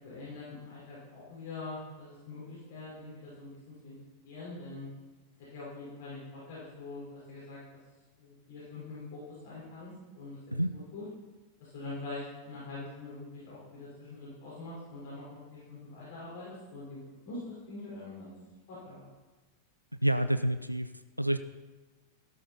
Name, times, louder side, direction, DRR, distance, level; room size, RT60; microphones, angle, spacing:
voice 1, 0.0-4.0 4.2-4.9 5.5-7.6 8.2-10.4 10.7-11.0 11.6-18.3 18.7-19.1, left 2 dB, 55° left, -7 dB, 5.1 m, -44 dB
voice 2, 20.0-20.9 21.2-21.4, right 1 dB, 90° right, 11 dB, 0.4 m, -28 dB
13.0 x 12.5 x 4.3 m, 1.3 s
figure-of-eight pair, 90°, 0 cm